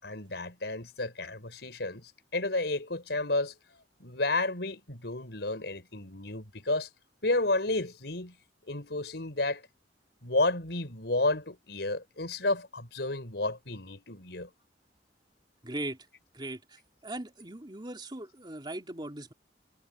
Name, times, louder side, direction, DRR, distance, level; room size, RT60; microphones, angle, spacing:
voice 1, 0.0-3.5 4.0-6.9 7.2-8.3 8.7-9.6 10.2-14.5, left 2 dB, 75° left, 4.8 m, -31 dB
voice 2, 15.6-16.0 16.3-19.3, right 1 dB, 25° right, 3.1 m, -39 dB
head